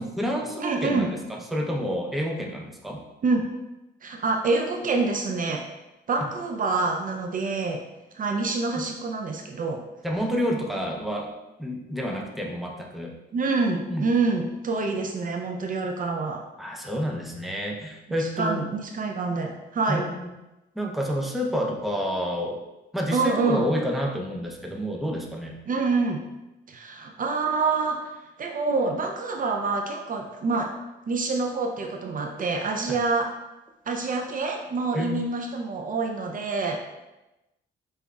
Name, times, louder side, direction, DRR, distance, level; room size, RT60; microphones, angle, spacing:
voice 1, 0.0-3.0 6.2-6.3 10.0-11.3 11.6-13.1 13.9-14.1 16.6-18.6 19.9-20.3 20.8-22.6 22.9-25.5 32.9-33.0 34.9-35.2, equal, ahead, 0 dB, 0.6 m, -29 dB
voice 2, 0.6-1.1 3.2-3.4 4.0-5.6 6.1-7.8 8.1-9.8 13.3-16.4 18.2-20.0 23.1-23.7 25.7-26.2 26.7-28.0 28.4-30.7 31.1-33.3 33.9-36.8, right 3 dB, 45° right, 2 dB, 0.5 m, -26 dB
5.3 x 3.3 x 2.4 m, 0.99 s
cardioid pair, 90°, 20 cm